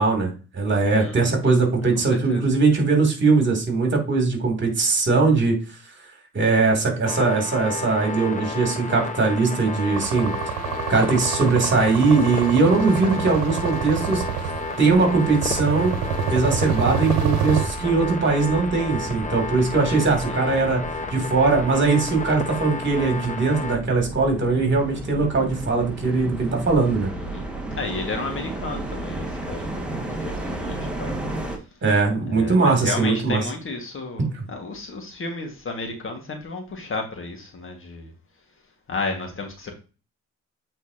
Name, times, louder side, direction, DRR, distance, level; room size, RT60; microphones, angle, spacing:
voice 1, 0.0-5.6 6.3-10.3 10.9-14.2 14.8-15.9 16.3-20.8 21.1-27.1 31.8-33.5 34.3-34.4, right 3 dB, 40° right, 3.0 m, -20 dB
voice 2, 1.0-1.3 2.1-2.4 20.3-20.4 27.3-27.5 27.8-31.1 32.3-38.1 38.9-39.7, left 3 dB, 45° left, 1.9 m, -32 dB
sound 1, 7.1-23.8, left 3 dB, 25° left, 1.1 m, -32 dB
sound 2, 10.0-17.7, right 8 dB, 90° right, 1.0 m, -28 dB
sound 3, 14.3-31.6, right 2 dB, 5° right, 1.9 m, -35 dB
8.4 x 4.3 x 2.9 m
cardioid pair, 90°, 30 cm